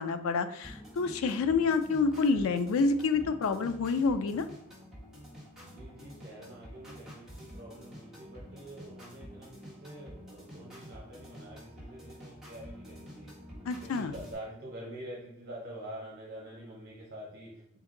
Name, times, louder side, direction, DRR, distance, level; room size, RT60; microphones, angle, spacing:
voice 1, 0.0-4.5 13.7-14.1, left 4 dB, 70° left, 10 dB, 0.3 m, -28 dB
sound 1, 0.6-14.3, equal, ahead, 1.2 m, -48 dB
voice 2, 5.6-13.3 13.8-17.8, right 1 dB, 45° right, -4 dB, 0.9 m, -46 dB
4.0 x 2.6 x 3.7 m, 0.73 s
head